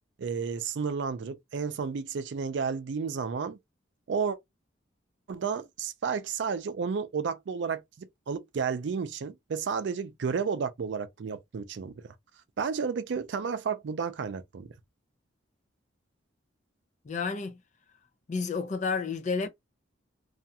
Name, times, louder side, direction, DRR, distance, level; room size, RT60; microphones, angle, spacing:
voice 1, 0.2-3.6 4.1-4.4 5.3-12.1 12.6-14.7, right 6 dB, 70° right, 0.4 m, -32 dB
voice 2, 17.0-17.6 18.3-19.5, left 4 dB, 40° left, 0.4 m, -30 dB
2.4 x 2.2 x 2.6 m
head